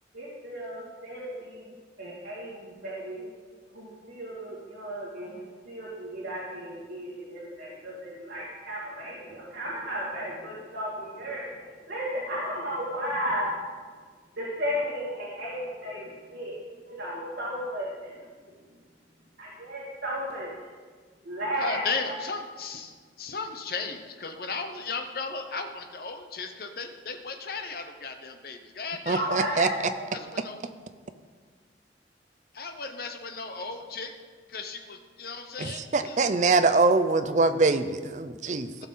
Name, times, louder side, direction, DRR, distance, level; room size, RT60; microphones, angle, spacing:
voice 1, 0.1-1.6 2.0-3.3 3.7-11.5 11.9-13.5 14.4-16.5 16.8-18.1 19.4-20.5 21.2-22.2 29.1-30.2, equal, 75° right, -8 dB, 2.3 m, -34 dB
voice 2, 21.6-29.6 30.1-30.6 32.5-34.1 34.5-36.2 38.8-38.9, left 4 dB, 55° left, 6 dB, 0.8 m, -36 dB
voice 3, 29.1-29.7 35.6-38.9, right 3 dB, 40° right, 10 dB, 0.5 m, -24 dB
16.0 x 6.2 x 4.0 m, 1.6 s
head